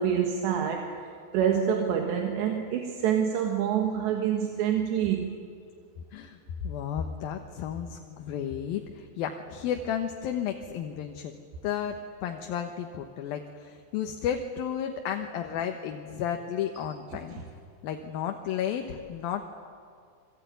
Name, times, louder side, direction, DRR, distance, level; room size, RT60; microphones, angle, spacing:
voice 1, 0.0-5.3, right 8 dB, 80° right, 3 dB, 3.8 m, -27 dB
voice 2, 6.1-11.3 11.6-17.4 17.8-19.5, left 8 dB, 70° left, 4 dB, 2.6 m, -33 dB
27.5 x 22.5 x 9.3 m, 2.2 s
omnidirectional pair, 5.0 m